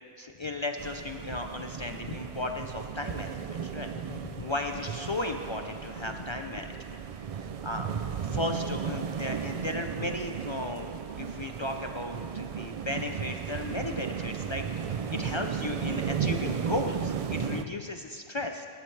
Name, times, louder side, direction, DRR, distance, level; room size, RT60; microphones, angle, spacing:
voice 1, 0.2-7.0 7.4-7.9 8.2-18.7, left 2 dB, 45° left, 4 dB, 0.4 m, -35 dB
sound 1, 0.8-17.6, right 7 dB, 70° right, 0.3 m, -35 dB
18.0 x 11.0 x 3.3 m, 2.2 s
omnidirectional pair, 1.1 m